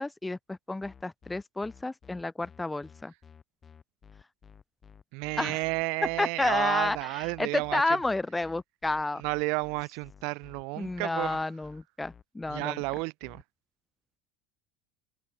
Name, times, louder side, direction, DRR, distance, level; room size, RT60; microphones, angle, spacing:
voice 1, 0.0-3.1 5.4-5.6 6.2-9.2 10.8-12.8, left 2 dB, 10° left, 0.4 m, -31 dB
sound 1, 0.8-13.4, left 6 dB, 25° left, 8.0 m, -53 dB
voice 2, 5.1-7.8 9.2-11.4 12.5-13.4, right 31 dB, 65° right, 2.8 m, -32 dB
open air
supercardioid pair, 110°, 0 cm